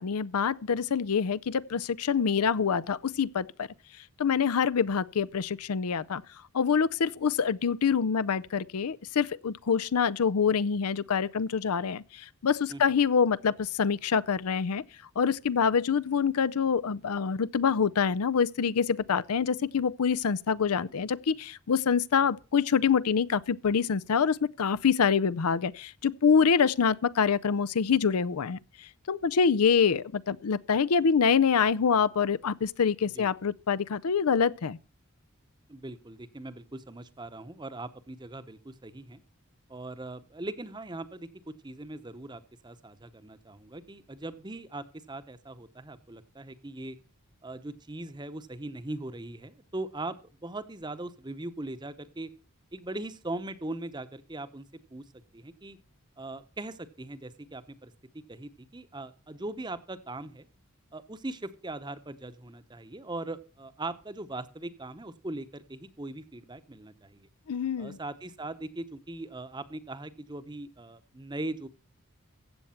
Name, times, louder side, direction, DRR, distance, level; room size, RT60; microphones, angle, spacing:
voice 1, 0.0-3.7 4.2-6.2 6.5-14.8 15.2-28.6 29.1-34.8 67.5-68.0, left 6 dB, 90° left, 0.5 m, -26 dB
voice 2, 35.7-39.2 39.7-47.0 47.4-50.2 50.4-52.3 52.7-55.0 55.3-55.8 56.2-57.9 58.3-60.5 60.9-67.3 67.8-71.7, right 2 dB, 20° right, 0.8 m, -40 dB
15.0 x 8.0 x 5.7 m
head